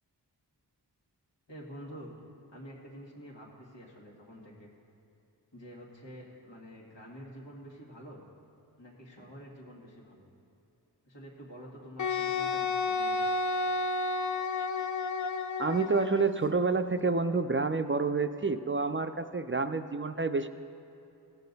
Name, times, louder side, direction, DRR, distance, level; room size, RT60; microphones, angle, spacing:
voice 1, 1.5-2.2 2.5-4.7 5.5-8.2 8.8-10.3 11.1-13.2, equal, 90° left, -4 dB, 2.0 m, -48 dB
Wind instrument woodwind instrument, 12.0-16.3, left 3 dB, 45° left, 0.5 m, -31 dB
voice 2, 15.6-20.5, right 4 dB, 30° right, 8 dB, 0.4 m, -28 dB
16.0 x 6.7 x 4.0 m, 2.8 s
wide cardioid pair, 40°, 42 cm